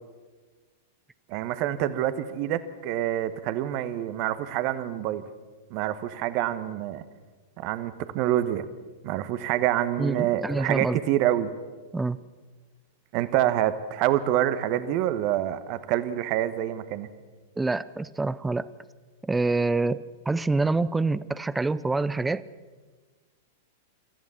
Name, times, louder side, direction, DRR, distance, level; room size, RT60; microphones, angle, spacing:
voice 1, 1.3-5.2 5.7-7.0 7.6-8.7 9.0-11.5 13.1-17.1, right 12 dB, 45° right, 13 dB, 1.2 m, -26 dB
voice 2, 10.0-11.0 11.9-12.2 17.6-18.7 19.2-22.4, right 3 dB, 10° right, 17 dB, 0.6 m, -26 dB
26.0 x 14.5 x 7.1 m, 1.4 s
figure-of-eight pair, 95°, 0 cm